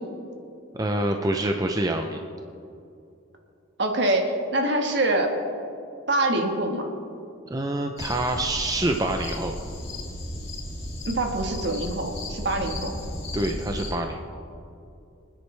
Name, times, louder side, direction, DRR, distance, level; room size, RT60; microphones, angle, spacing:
voice 1, 0.7-2.2 7.5-9.6 13.3-14.2, right 1 dB, 20° right, 4 dB, 0.5 m, -26 dB
voice 2, 3.8-5.3 6.1-6.9 11.0-12.9, right 2 dB, 55° right, 3 dB, 1.5 m, -25 dB
sound 1, 8.0-13.9, left 1 dB, 30° left, 3.4 m, -35 dB
24.5 x 10.0 x 3.4 m, 2.6 s
head